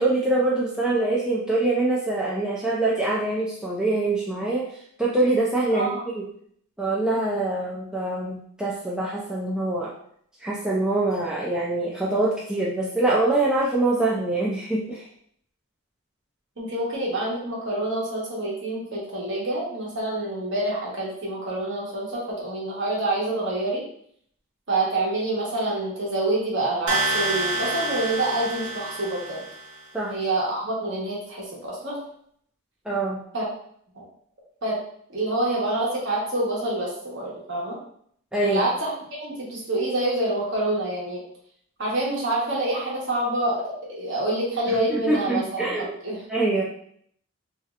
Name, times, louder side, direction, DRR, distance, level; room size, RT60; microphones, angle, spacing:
voice 1, 0.0-4.7 5.0-6.3 6.8-9.9 10.4-15.1 29.9-30.1 32.9-33.2 38.3-38.6 44.7-45.9 46.3-46.6, right 2 dB, 5° right, -6 dB, 0.3 m, -24 dB
voice 2, 5.7-6.0 16.6-23.8 24.7-29.4 30.1-32.0 33.3-33.5 33.9-34.0 34.6-34.8 35.1-37.8 38.4-38.9 39.2-41.2 41.8-46.2, right 2 dB, 55° right, -5 dB, 1.1 m, -27 dB
sound 1, 26.9-29.8, right 2 dB, 75° right, 0.6 m, -28 dB
3.0 x 2.8 x 2.4 m, 0.65 s
head